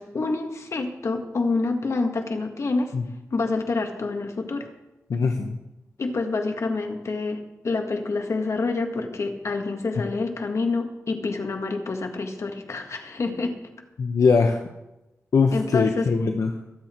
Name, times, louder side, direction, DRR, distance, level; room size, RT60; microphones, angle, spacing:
voice 1, 0.0-2.9 3.3-4.7 6.0-13.6 15.5-16.1, left 3 dB, 60° left, 4 dB, 1.8 m, -27 dB
voice 2, 5.1-5.6 14.0-14.6 15.3-16.5, left 4 dB, 75° left, 4 dB, 1.0 m, -21 dB
23.5 x 8.3 x 4.5 m, 0.95 s
wide cardioid pair, 115°, 6 cm